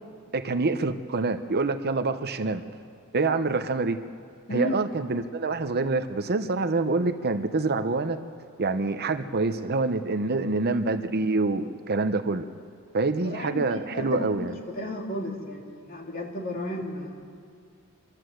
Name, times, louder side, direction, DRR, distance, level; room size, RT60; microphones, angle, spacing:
voice 1, 0.3-2.6 3.1-4.0 4.5-8.2 8.6-12.4 12.9-14.5, right 3 dB, 45° right, 9 dB, 0.8 m, -26 dB
voice 2, 13.2-17.2, left 1 dB, 40° left, 0 dB, 2.7 m, -33 dB
26.0 x 13.5 x 7.7 m, 2.2 s
head